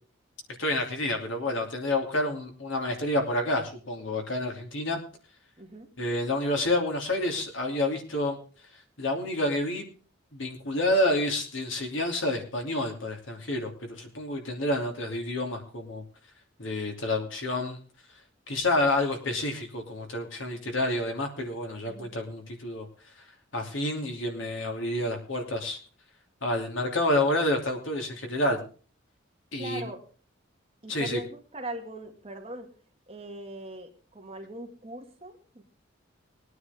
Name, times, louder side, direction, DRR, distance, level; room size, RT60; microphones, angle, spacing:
voice 1, 0.6-5.0 6.0-8.4 9.0-9.9 10.3-16.0 16.6-17.8 18.5-22.9 23.5-25.8 26.4-28.6 29.5-29.9 30.9-31.2, left 1 dB, 75° left, 3 dB, 2.9 m, -29 dB
voice 2, 5.6-5.9 21.9-22.1 29.6-30.0 30.8-32.7 33.1-35.6, right 1 dB, 30° right, 3 dB, 2.1 m, -40 dB
21.0 x 9.6 x 3.6 m, 0.39 s
head